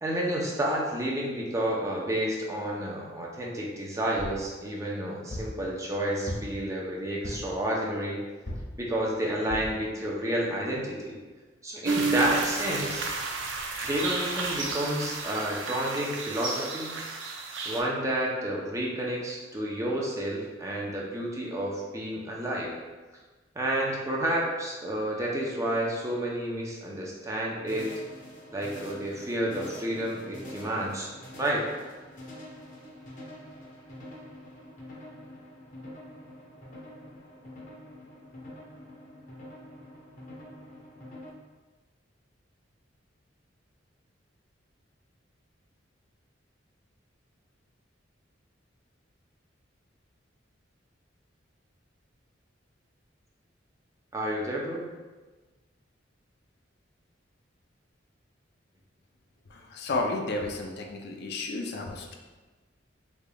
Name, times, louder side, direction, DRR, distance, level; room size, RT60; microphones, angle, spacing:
voice 1, 0.0-8.2 8.8-11.2 11.6-13.1 13.8-17.0 17.7-22.7 23.6-27.9 28.5-31.1 31.4-31.7 54.1-54.9, right 1 dB, 15° right, -3 dB, 0.6 m, -30 dB
sound 1, 4.2-4.5 5.3-5.6 6.3-6.7 7.2-7.6 8.5-8.8 9.5-9.8 10.4-10.5 10.7-10.8, left 1 dB, 80° left, 1.4 m, -37 dB
sound 2, 11.9-17.8, right 3 dB, 75° right, 0.5 m, -31 dB
sound 3, 27.7-41.3, left 1 dB, 45° left, 0.9 m, -46 dB
voice 2, 59.5-62.2, left 2 dB, 60° left, 2 dB, 0.4 m, -32 dB
3.7 x 3.4 x 2.3 m, 1.3 s
head